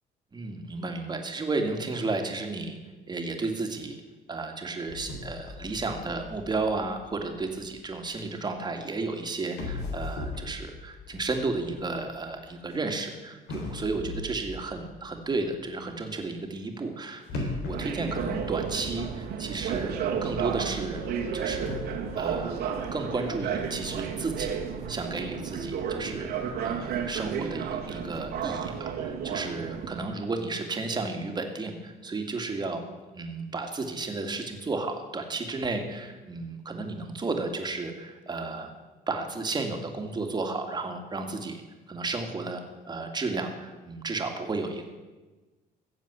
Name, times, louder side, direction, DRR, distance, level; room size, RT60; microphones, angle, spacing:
voice 1, 0.3-2.8 3.1-4.0 4.3-21.0 21.3-22.6 22.9-24.5 24.9-26.3 26.6-32.8 33.1-38.7 39.1-41.6 41.9-44.9, right 3 dB, 25° right, 5 dB, 2.2 m, -33 dB
sound 1, 4.9-8.0 9.0-9.1 9.5-12.8 13.5-15.4 17.3-19.1 19.3-19.4 20.1-20.2 21.1-21.8, left 3 dB, 90° left, 3.6 m, -38 dB
sound 2, 17.7-30.0, right 7 dB, 70° right, 2.1 m, -32 dB
15.5 x 7.3 x 8.2 m, 1.2 s
cardioid pair, 110°, 17 cm